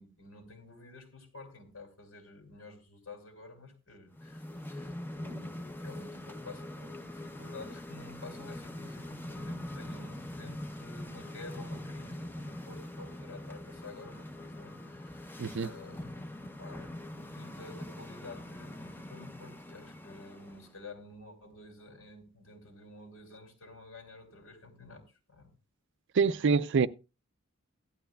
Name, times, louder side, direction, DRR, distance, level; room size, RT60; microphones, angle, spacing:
voice 1, 0.0-25.5 26.2-26.3, left 2 dB, 75° left, 2.7 m, -51 dB
sound 1, 4.1-20.7, left 1 dB, 10° left, 0.6 m, -43 dB
voice 2, 15.4-15.7 26.2-26.9, right 5 dB, 55° right, 0.4 m, -25 dB
15.5 x 11.5 x 2.2 m
head